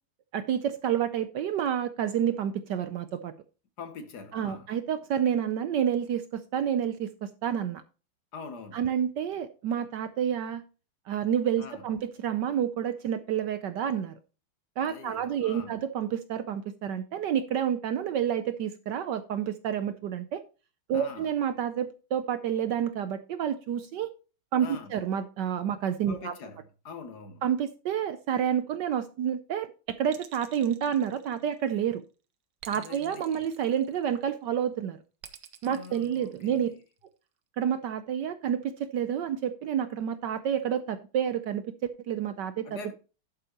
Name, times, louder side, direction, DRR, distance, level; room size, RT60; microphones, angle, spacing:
voice 1, 0.3-3.3 4.3-7.8 8.7-10.6 11.1-14.1 14.8-20.4 20.9-24.1 24.5-26.3 27.4-32.0 32.7-35.0 35.6-36.7 37.6-41.6 42.1-42.7, right 9 dB, 70° right, 1.1 m, -29 dB
voice 2, 3.8-4.7 8.3-8.8 11.6-11.9 14.8-15.8 20.9-21.3 24.6-24.9 26.1-27.4 32.7-33.5 35.6-36.8 42.6-42.9, left 5 dB, 60° left, 1.3 m, -44 dB
sound 1, 30.1-31.8 32.6-34.3 35.2-36.8, right 10 dB, 85° right, 1.9 m, -49 dB
11.0 x 8.8 x 2.9 m
omnidirectional pair, 2.3 m